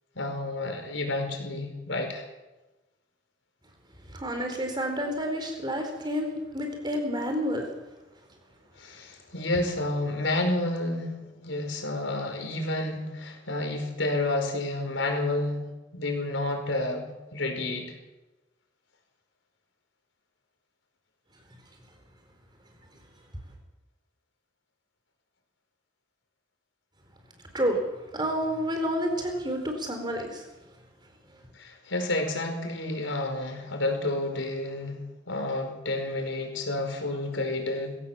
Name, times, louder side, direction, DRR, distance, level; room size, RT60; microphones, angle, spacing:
voice 1, 0.1-2.2 8.8-15.7 15.9-17.0 17.3-17.9 31.5-35.0 35.3-38.0, left 2 dB, 90° left, 4 dB, 5.1 m, -30 dB
voice 2, 4.1-7.7 27.5-27.8 28.1-30.4, equal, 25° right, 4 dB, 4.2 m, -29 dB
23.0 x 16.0 x 7.4 m, 1.1 s
head